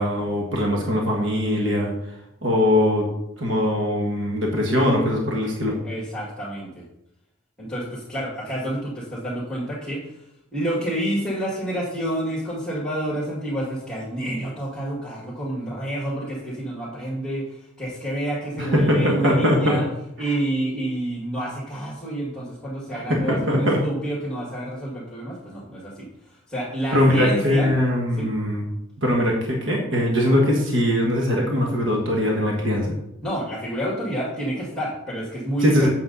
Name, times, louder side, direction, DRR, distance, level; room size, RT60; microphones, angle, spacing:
voice 1, 0.0-1.9 2.4-3.1 3.4-5.7 18.6-19.8 23.1-23.8 26.9-28.6 29.0-33.0 35.6-35.9, left 1 dB, 65° right, -1 dB, 1.6 m, -21 dB
voice 2, 5.8-6.9 7.6-10.2 10.5-19.9 20.2-27.7 28.1-28.3 33.2-35.9, right 1 dB, 5° left, -6 dB, 1.9 m, -29 dB
8.4 x 6.6 x 4.0 m, 0.81 s
head